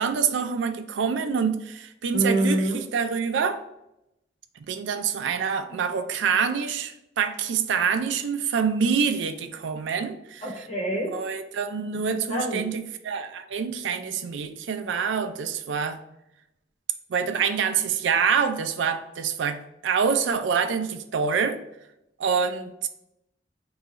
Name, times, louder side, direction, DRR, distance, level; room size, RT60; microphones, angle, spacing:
voice 1, 0.0-3.6 4.7-10.5 10.9-16.0 17.1-21.6 22.2-22.9, right 6 dB, 85° right, 0.4 m, -26 dB
voice 2, 2.1-2.8 10.4-11.1 12.1-12.7, right 1 dB, 35° left, 0.9 m, -26 dB
3.8 x 2.3 x 4.0 m
head